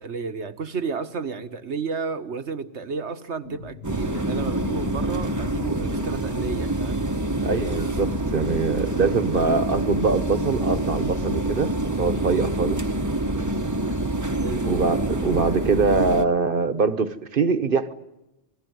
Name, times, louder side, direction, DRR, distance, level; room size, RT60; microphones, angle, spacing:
voice 1, 0.0-7.0 14.4-14.7, right 5 dB, 80° right, 1.7 m, -32 dB
sound 1, 3.4-11.5, left 3 dB, 65° left, 1.6 m, -39 dB
sound 2, 3.8-16.2, right 1 dB, 15° right, 1.0 m, -26 dB
voice 2, 7.4-12.8 14.6-17.9, right 4 dB, 50° right, 1.4 m, -23 dB
27.5 x 19.5 x 9.5 m
omnidirectional pair, 1.1 m